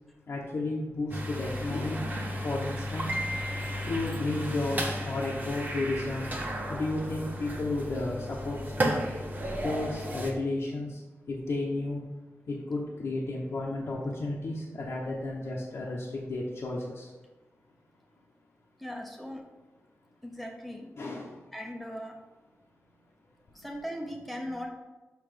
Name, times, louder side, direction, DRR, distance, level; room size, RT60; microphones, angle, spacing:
voice 1, 0.3-2.0 2.4-3.1 3.9-4.8 5.0-6.3 6.7-8.2 8.4-8.6 9.6-10.9 11.3-12.0 12.5-17.0 21.0-21.3, left 2 dB, 65° left, -5 dB, 1.1 m, -32 dB
sound 1, 1.1-10.3, equal, 35° right, 1.3 m, -33 dB
voice 2, 18.8-19.4 20.2-20.9 21.5-22.2 23.5-24.7, equal, ahead, 1 dB, 1.0 m, -38 dB
5.9 x 5.8 x 5.1 m, 1.2 s
wide cardioid pair, 95°, 5 cm